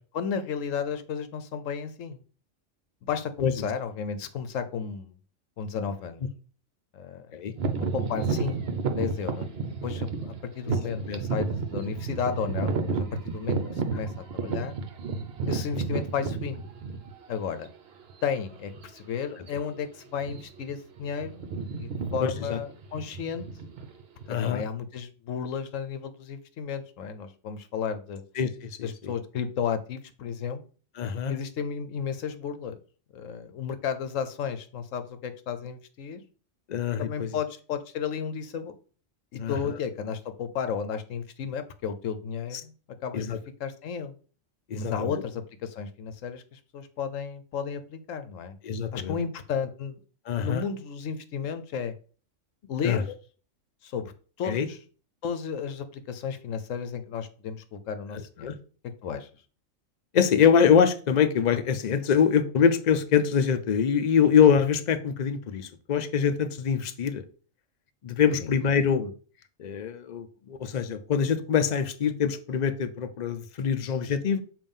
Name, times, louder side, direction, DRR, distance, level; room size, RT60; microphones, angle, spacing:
voice 1, 0.0-2.2 3.0-5.1 5.6-6.2 6.9-7.3 7.9-8.6 9.0-9.5 9.8-14.8 15.5-16.6 17.3-17.7 18.2-21.5 21.8-23.5 24.4-28.2 28.8-30.6 31.3-32.8 33.1-36.2 37.0-38.7 39.3-42.7 43.0-44.1 44.7-48.5 48.9-50.0 50.3-51.9 52.7-53.1 53.8-54.1 54.4-54.8 55.2-58.5 59.0-59.3 68.4-68.5, left 7 dB, 75° left, 10 dB, 1.0 m, -33 dB
sound 1, 7.6-17.3 18.0-18.1 18.7-19.0 19.3-19.5 20.1-20.7 21.0-24.4, right 4 dB, 55° right, 0.9 m, -31 dB
voice 2, 22.2-22.6 24.3-24.6 28.4-29.1 31.0-31.3 36.7-37.3 39.4-39.7 42.5-42.6 43.1-43.4 44.7-45.2 48.6-49.2 50.3-50.6 52.8-53.0 54.4-54.7 58.1-58.6 60.1-67.2 68.0-69.1 69.6-74.4, left 7 dB, 50° left, 9 dB, 0.5 m, -24 dB
7.1 x 2.6 x 5.4 m, 0.40 s
omnidirectional pair, 1.4 m